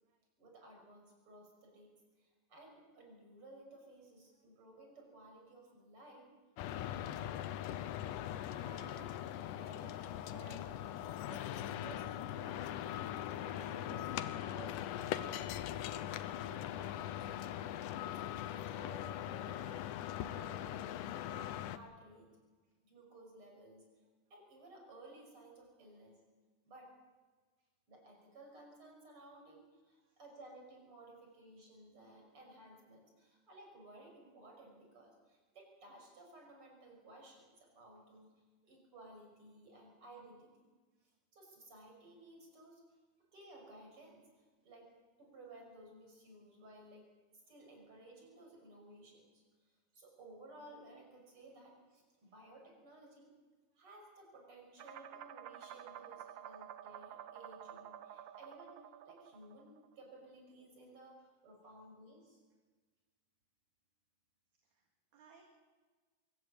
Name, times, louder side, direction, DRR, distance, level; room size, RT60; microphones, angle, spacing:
voice 1, 0.4-1.9 2.2-6.3 6.7-7.6 8.3-9.2 9.5-10.9 11.2-12.7 13.1-15.5 15.9-17.4 18.1-22.3 22.8-23.8 24.3-26.2 26.6-26.9 27.9-38.3 38.6-40.7 41.0-42.8 43.3-44.9 45.2-53.3 53.8-62.4, right 2 dB, 40° right, 1 dB, 6.6 m, -57 dB
sound 1, 6.6-21.8, left 11 dB, 75° left, 2.3 m, -41 dB
sound 2, 54.8-60.1, right 10 dB, 80° right, 1.4 m, -51 dB
voice 2, 64.6-65.4, right 6 dB, 60° right, 1 dB, 3.4 m, -66 dB
23.5 x 17.0 x 8.5 m, 1.4 s
omnidirectional pair, 3.9 m